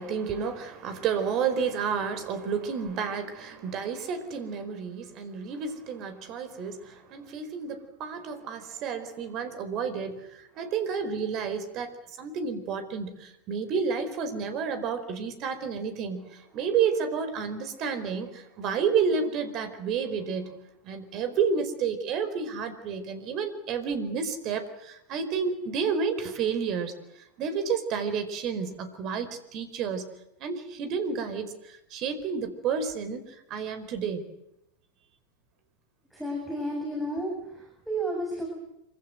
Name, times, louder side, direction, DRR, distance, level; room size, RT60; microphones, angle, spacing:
voice 1, 0.0-11.9 12.2-20.6 20.8-30.1 30.4-34.3, right 6 dB, 35° right, 10 dB, 4.7 m, -30 dB
voice 2, 36.1-38.6, right 1 dB, 5° right, -1 dB, 7.2 m, -32 dB
27.0 x 25.0 x 8.0 m, 0.82 s
figure-of-eight pair, 90°, 0 cm